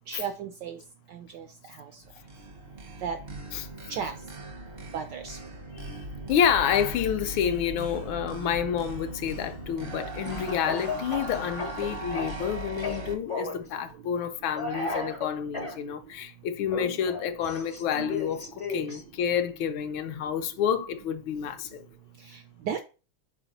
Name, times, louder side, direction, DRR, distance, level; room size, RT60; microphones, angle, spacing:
voice 1, 0.1-0.8 1.3-1.4 3.0-3.2 3.9-4.1 4.9-5.4 22.7-22.8, right 7 dB, 75° right, 1.0 m, -33 dB
sound 1, 2.0-13.2, right 2 dB, 50° right, 0.6 m, -39 dB
voice 2, 6.3-21.9, left 8 dB, 75° left, 1.3 m, -29 dB
Speech / Cough, 10.2-12.5 12.8-13.6 14.5-15.8 16.7-19.0, left 3 dB, 35° left, 0.5 m, -34 dB
5.9 x 4.3 x 4.0 m
omnidirectional pair, 2.4 m